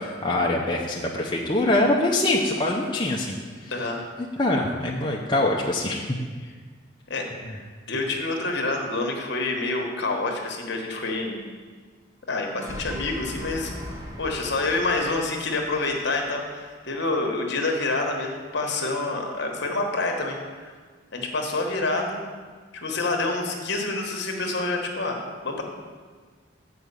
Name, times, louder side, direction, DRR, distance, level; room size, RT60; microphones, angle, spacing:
voice 1, 0.0-3.7 4.4-6.0 7.5-7.6, left 2 dB, 25° left, -2 dB, 0.6 m, -24 dB
voice 2, 3.7-4.0 7.1-7.3 7.9-11.4 12.3-13.7 14.2-20.7 21.1-22.2 22.7-25.2 25.4-25.6, left 2 dB, 60° left, 1 dB, 1.2 m, -27 dB
sound 1, 12.5-16.5, equal, 15° right, 0.9 m, -39 dB
7.8 x 4.8 x 6.8 m, 1.5 s
head